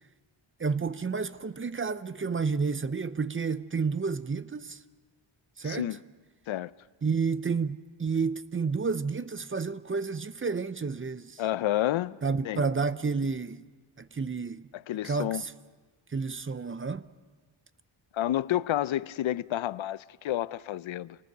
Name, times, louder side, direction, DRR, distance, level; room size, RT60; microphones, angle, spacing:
voice 1, 0.6-4.8 5.6-6.0 7.0-11.4 12.2-13.6 14.0-14.7 15.0-15.5 16.1-17.1, right 5 dB, 25° right, 0.6 m, -30 dB
voice 2, 5.6-6.0 6.5-6.7 11.4-12.2 12.4-12.6 14.7-15.4 18.1-21.2, left 13 dB, 80° left, 0.6 m, -30 dB
26.5 x 19.0 x 6.7 m
wide cardioid pair, 110°, 46 cm